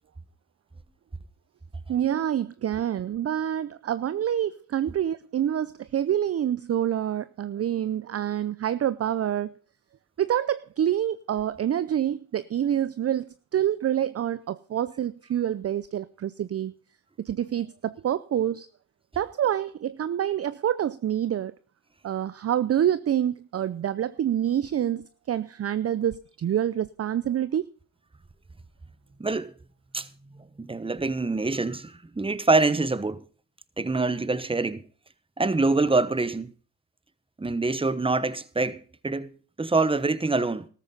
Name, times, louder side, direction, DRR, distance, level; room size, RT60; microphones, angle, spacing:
voice 1, 1.9-9.5 10.2-16.7 17.2-18.7 19.2-21.5 22.0-27.6, right 10 dB, 35° right, 0.6 m, -27 dB
voice 2, 29.2-29.5 29.9-30.1 30.3-33.2 33.8-34.8 35.4-36.5 37.4-40.7, right 3 dB, 10° right, 1.1 m, -25 dB
13.5 x 13.5 x 3.9 m
supercardioid pair, 70°, 43 cm